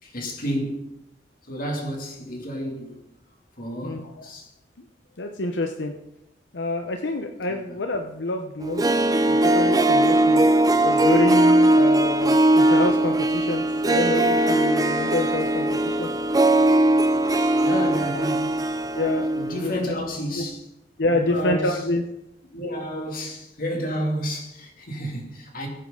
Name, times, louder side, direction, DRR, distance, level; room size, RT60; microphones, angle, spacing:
voice 1, 0.0-0.9 1.5-3.0 3.6-4.5 7.5-7.6 17.6-18.7 19.3-20.7 21.1-21.8 22.5-25.7, equal, 55° left, 2.7 m, -30 dB
voice 2, 3.8-4.3 5.2-5.9 6.5-9.0 9.3-10.4 10.8-16.1 19.0-19.3 19.6-19.9 20.4-20.5 21.0-22.0, left 2 dB, 85° left, 0.9 m, -27 dB
Harp, 8.6-19.6 19.9-20.0, right 1 dB, 20° right, 0.5 m, -20 dB
21.0 x 8.4 x 3.9 m
head